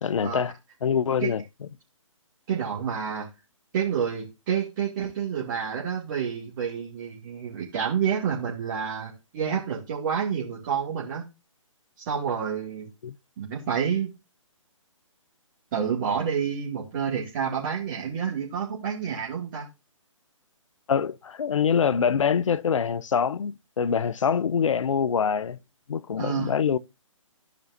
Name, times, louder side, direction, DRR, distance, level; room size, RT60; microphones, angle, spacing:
voice 1, 0.0-0.5 0.8-1.4 13.0-13.2 20.9-25.6 25.9-26.8, left 7 dB, 65° left, 0.5 m, -24 dB
voice 2, 2.5-3.3 3.7-11.2 12.0-12.9 13.4-14.1 15.7-19.6 26.2-26.5, right 7 dB, 35° right, 2.4 m, -29 dB
13.5 x 5.2 x 2.7 m
figure-of-eight pair, 140°, 17 cm